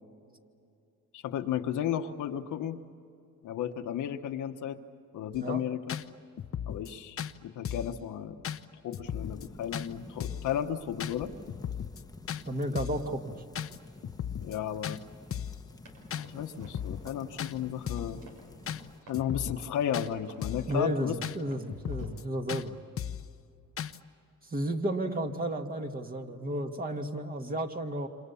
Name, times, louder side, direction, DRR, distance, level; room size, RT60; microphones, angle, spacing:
voice 1, 1.1-2.8 3.4-4.8 5.1-6.0 6.7-8.4 8.8-11.3 14.4-15.0 16.1-18.2 19.1-21.2, left 10 dB, 80° left, 6 dB, 1.3 m, -34 dB
sound 1, 5.3-5.4 5.9-6.0 6.4-6.9 7.2-7.3 7.6-8.0 8.4-8.6 8.9-9.5 9.7-9.9 10.2-10.5 11.0-11.1 11.5-12.0 12.3-12.4 12.8-13.1 13.5-13.8 14.0-14.6 14.8-15.0 15.3-15.6 16.1-16.3 16.6-17.1 17.4-17.5 17.9-18.2 18.7-18.8 19.1-19.7 19.9-20.1 20.4-20.7 21.2-21.4 21.7-22.2 22.5-22.6 23.0-23.3 23.8-24.0, left 9 dB, 45° left, 0.8 m, -36 dB
sound 2, 9.0-19.0, left 2 dB, 10° left, 1.1 m, -51 dB
voice 2, 12.5-13.4 20.7-22.8 24.5-28.1, right 1 dB, 30° right, 4 dB, 2.1 m, -32 dB
Run, 15.9-22.1, right 1 dB, 85° right, 6.2 m, -54 dB
28.5 x 27.0 x 7.1 m, 2.5 s
cardioid pair, 90°, 30 cm